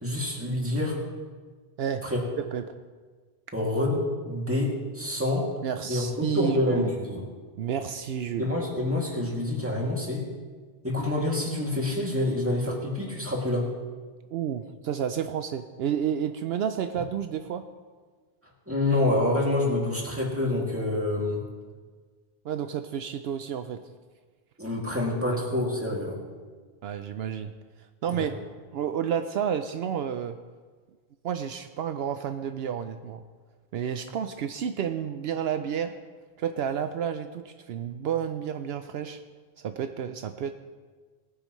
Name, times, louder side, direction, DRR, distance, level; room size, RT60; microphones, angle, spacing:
voice 1, 0.0-1.0 2.0-2.2 3.5-5.5 5.9-7.2 8.4-10.3 10.8-13.7 18.7-21.4 24.6-26.2 28.1-28.3, left 1 dB, 10° right, -3 dB, 2.3 m, -27 dB
voice 2, 5.6-6.9 7.6-8.5 14.3-17.6 22.4-23.8 25.3-25.7 26.8-27.5 27.8-28.5 28.7-30.4 31.2-33.2 33.7-35.9 36.4-39.2 39.6-40.5, right 8 dB, 75° right, 9 dB, 0.8 m, -30 dB
20.0 x 9.5 x 3.1 m, 1.5 s
omnidirectional pair, 1.1 m